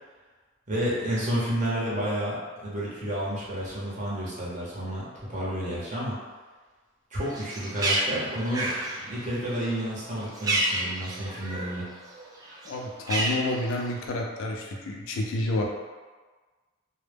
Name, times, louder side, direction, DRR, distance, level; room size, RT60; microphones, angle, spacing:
voice 1, 0.7-6.2 7.1-8.7 9.0-11.9, equal, 35° right, -7 dB, 0.7 m, -30 dB
Bird, 7.2-11.8 12.1-14.1, right 1 dB, 20° right, 0.3 m, -30 dB
voice 2, 12.6-15.6, left 1 dB, 70° left, 1 dB, 0.4 m, -29 dB
2.0 x 2.0 x 3.2 m, 1.4 s
head